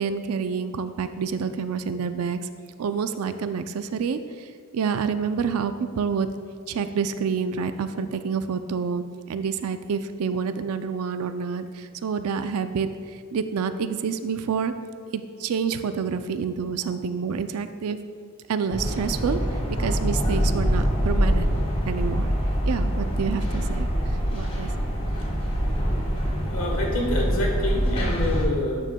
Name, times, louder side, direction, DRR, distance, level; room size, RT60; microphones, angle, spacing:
voice 1, 0.0-2.4 2.8-4.5 4.7-6.3 6.7-12.9 13.3-14.7 15.1-18.0 18.5-19.4 19.8-22.3 22.7-23.9 24.3-24.7, right 6 dB, 80° right, 10 dB, 0.4 m, -28 dB
sound 1, 18.7-28.4, equal, 25° left, 1.5 m, -24 dB
voice 2, 26.5-28.9, left 1 dB, 70° left, 0 dB, 1.3 m, -27 dB
10.5 x 6.2 x 2.2 m, 2.1 s
head